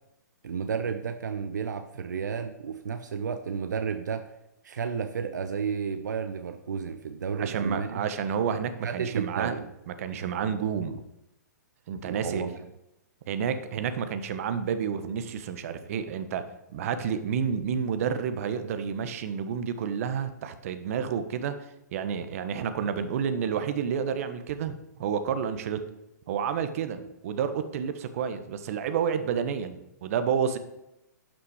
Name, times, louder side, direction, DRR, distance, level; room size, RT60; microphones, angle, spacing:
voice 1, 0.4-4.3 4.6-8.0 8.8-9.7 12.0-12.5, right 6 dB, 75° right, 8 dB, 0.9 m, -32 dB
voice 2, 7.4-9.5 9.9-11.0 11.9-12.4 13.3-16.4 16.7-21.5 21.9-25.8 26.3-30.6, right 7 dB, 50° right, 10 dB, 1.2 m, -30 dB
12.0 x 5.9 x 4.9 m, 0.89 s
hypercardioid pair, 135°, 10 cm